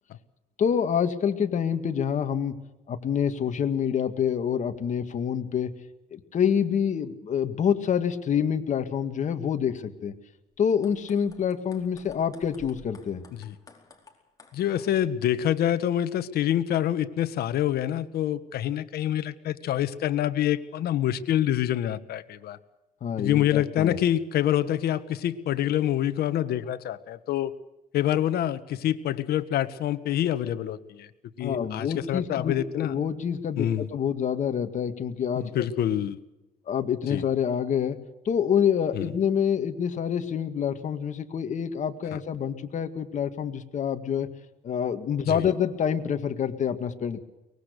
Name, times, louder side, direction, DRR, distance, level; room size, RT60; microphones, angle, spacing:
voice 1, 0.6-2.6 2.9-5.7 6.1-10.1 10.6-13.2 23.0-24.0 31.4-35.7 36.7-38.0 38.3-44.3 44.6-47.2, left 8 dB, 45° left, 8 dB, 2.1 m, -27 dB
sound 1, 10.6-15.1, left 3 dB, 20° left, 4.5 m, -53 dB
voice 2, 14.5-22.6 23.2-27.5 27.9-31.1 31.4-32.9 33.6-33.9 35.3-36.2 37.1-37.2 38.9-39.1 45.3-45.5, left 11 dB, 65° left, 12 dB, 1.5 m, -26 dB
23.5 x 20.5 x 6.7 m, 1.0 s
cardioid pair, 110°, 17 cm